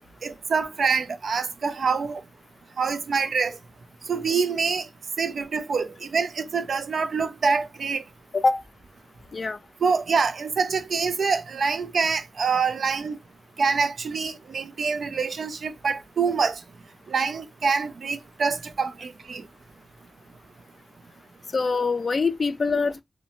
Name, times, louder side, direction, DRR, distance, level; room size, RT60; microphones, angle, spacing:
voice 1, 0.2-2.2 2.8-3.6 4.1-4.9 5.2-8.0 9.8-13.2 13.6-16.6 17.1-19.4, right 5 dB, 85° right, 0.3 m, -25 dB
voice 2, 21.5-23.0, left 4 dB, 60° left, 0.3 m, -24 dB
2.6 x 2.1 x 2.8 m
wide cardioid pair, 75°, 0 cm